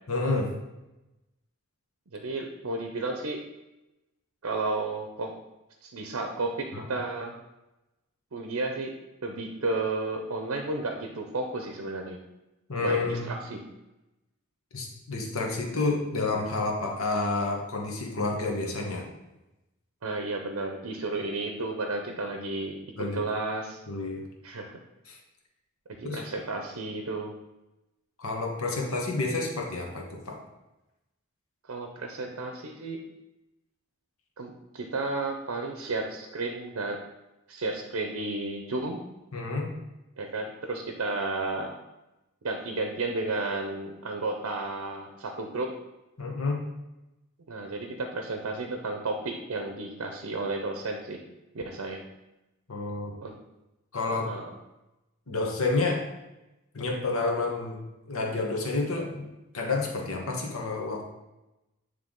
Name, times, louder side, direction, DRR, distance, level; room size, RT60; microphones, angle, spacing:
voice 1, 0.1-0.5 6.7-6.8 12.7-13.2 14.7-19.0 23.0-23.2 23.9-24.3 25.1-25.2 26.0-26.2 28.2-30.4 39.3-39.7 46.2-46.6 52.7-53.2 53.9-54.3 55.3-56.0 56.7-57.8 58.1-59.3 59.5-61.0, left 3 dB, 70° left, 1 dB, 1.2 m, -29 dB
voice 2, 2.1-3.4 4.4-5.3 5.8-7.3 8.3-8.9 9.2-12.2 12.8-13.6 20.0-22.8 23.1-23.8 24.4-24.8 26.0-27.3 31.6-33.0 34.4-37.0 37.5-39.0 40.2-41.7 42.4-45.7 47.5-51.2 51.5-52.0 53.2-53.3 54.1-54.5, right 2 dB, 70° right, 3 dB, 0.7 m, -32 dB
8.9 x 3.4 x 3.8 m, 0.98 s
head